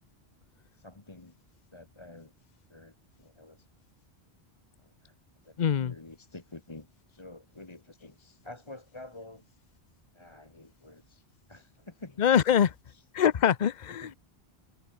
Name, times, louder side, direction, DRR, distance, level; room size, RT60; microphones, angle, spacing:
voice 1, 0.7-1.3 1.7-2.3 2.7-3.7 4.8-5.1 5.4-9.6 10.1-12.2 12.9-13.0 13.9-14.1, left 2 dB, 25° left, 1.6 m, -49 dB
voice 2, 5.6-5.9 12.2-12.7 13.1-14.1, left 8 dB, 45° left, 0.8 m, -24 dB
open air
omnidirectional pair, 1.1 m